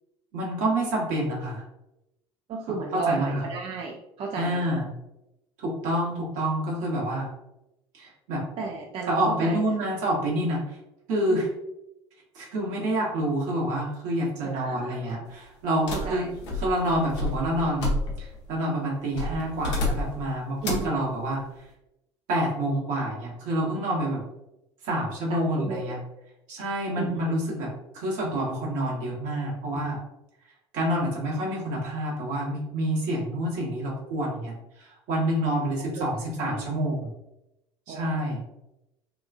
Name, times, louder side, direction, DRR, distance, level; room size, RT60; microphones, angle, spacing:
voice 1, 0.3-1.6 2.9-3.4 4.4-4.9 5.6-7.3 7.9-8.4 9.1-10.6 11.1-11.5 12.3-16.3 16.6-21.4 22.3-24.2 24.8-26.0 26.5-30.0 30.7-34.5 34.8-37.1 37.9-38.4, right 1 dB, 60° right, -3 dB, 1.2 m, -28 dB
voice 2, 2.5-4.7 8.6-9.6 11.3-11.4 14.4-15.0 15.9-16.3 20.6-20.9 25.3-26.0 27.0-27.2 35.9-36.6 37.9-38.4, right 4 dB, 40° right, 0 dB, 0.4 m, -33 dB
sound 1, 15.9-18.4 19.1-20.3 20.6-21.0, left 2 dB, 80° left, 0.8 m, -30 dB
2.8 x 2.3 x 2.5 m, 0.90 s
hypercardioid pair, 70°, 15 cm